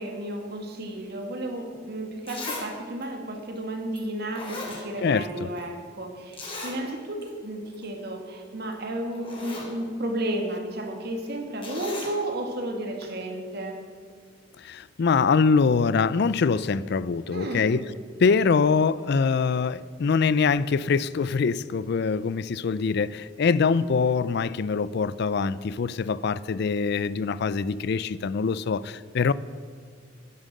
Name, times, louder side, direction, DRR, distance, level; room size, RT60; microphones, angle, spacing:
voice 1, 0.0-13.8 17.3-17.8, right 1 dB, 60° right, 3 dB, 2.2 m, -33 dB
Zipper (clothing), 1.7-1.8 2.3-2.7 3.0-3.1 4.0-4.1 4.3-5.3 5.6-5.7 6.3-6.8 7.2-7.3 7.7-7.9 8.7-8.8 9.1-9.7 11.6-12.1 13.0-13.1, left 3 dB, 30° left, 3.6 m, -37 dB
voice 2, 5.0-5.5 14.6-17.8 18.2-29.3, left 5 dB, 60° left, 18 dB, 0.4 m, -24 dB
11.5 x 10.5 x 7.5 m, 2.1 s
head